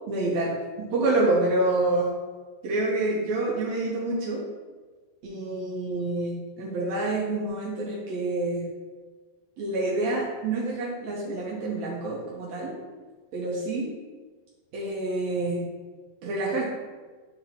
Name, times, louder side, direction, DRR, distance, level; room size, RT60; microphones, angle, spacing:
voice 1, 0.1-0.6 0.9-2.1 2.6-4.4 5.2-8.7 9.6-12.7 13.3-13.9 14.7-15.7 16.2-16.7, right 2 dB, 90° right, -5 dB, 1.5 m, -27 dB
11.0 x 3.9 x 2.9 m, 1.4 s
omnidirectional pair, 4.5 m